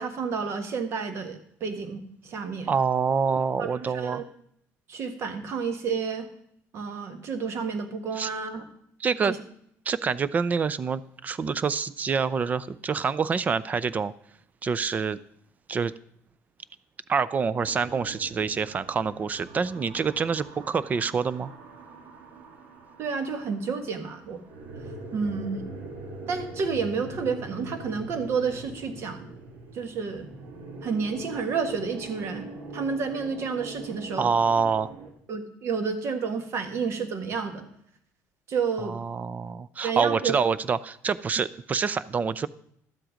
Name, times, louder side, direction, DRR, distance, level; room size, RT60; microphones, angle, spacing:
voice 1, 0.0-2.7 3.6-4.2 4.9-6.3 6.7-8.6 9.3-9.4 23.0-24.4 25.1-25.6 26.3-29.3 29.7-30.3 30.8-32.5 32.7-34.3 35.3-37.6 38.5-39.0 39.8-40.3, right 5 dB, 50° right, 8 dB, 1.5 m, -30 dB
voice 2, 2.7-4.2 8.2-8.3 9.0-9.3 9.9-14.1 14.6-15.2 15.7-15.9 17.1-21.5 34.2-34.9 38.8-42.5, right 5 dB, 25° right, 18 dB, 0.4 m, -26 dB
sound 1, 17.6-35.1, right 2 dB, 70° right, 2.0 m, -43 dB
12.0 x 7.7 x 5.0 m, 0.68 s
cardioid pair, 130°, 6 cm